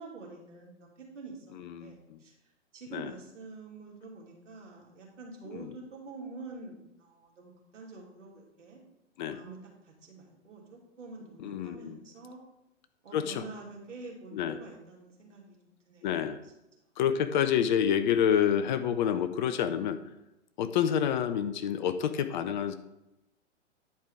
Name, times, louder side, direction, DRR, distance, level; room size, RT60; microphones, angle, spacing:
voice 1, 0.0-2.3 2.7-8.8 9.3-9.6 9.8-12.4 13.0-15.6 15.9-16.1, right 3 dB, 75° right, -2 dB, 2.9 m, -47 dB
voice 2, 1.5-2.2 2.9-3.1 5.5-5.8 9.2-9.4 11.4-12.0 13.1-13.5 14.3-14.6 16.0-16.4 17.0-20.0 20.6-22.7, left 9 dB, 40° left, 11 dB, 0.6 m, -28 dB
10.0 x 4.6 x 4.8 m, 0.92 s
figure-of-eight pair, 115°, 37 cm